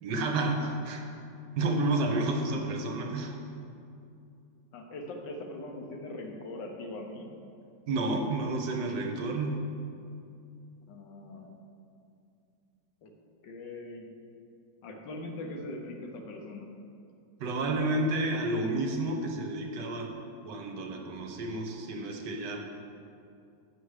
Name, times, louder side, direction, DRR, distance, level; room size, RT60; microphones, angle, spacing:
voice 1, 0.0-1.0 1.6-3.3 7.9-9.6 17.4-20.1 20.4-22.6, right 2 dB, 75° right, 3 dB, 1.4 m, -30 dB
voice 2, 4.7-7.3 10.9-11.5 13.0-13.1 13.4-14.1 14.8-16.7, left 2 dB, 80° left, 2 dB, 1.5 m, -41 dB
9.0 x 5.2 x 4.8 m, 2.5 s
omnidirectional pair, 1.9 m